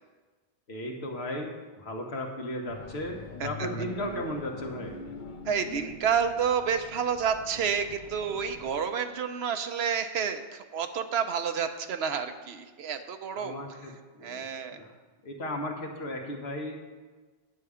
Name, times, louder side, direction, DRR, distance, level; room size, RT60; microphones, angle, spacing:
voice 1, 0.7-3.2 3.4-5.0 13.3-14.9 15.2-16.8, left 1 dB, 85° left, 1 dB, 1.5 m, -36 dB
sound 1, 2.7-8.8, left 2 dB, 55° left, 0.8 m, -43 dB
voice 2, 5.5-13.6 14.2-14.9, right 7 dB, 85° right, 7 dB, 0.9 m, -29 dB
10.0 x 6.8 x 4.9 m, 1.3 s
omnidirectional pair, 1.0 m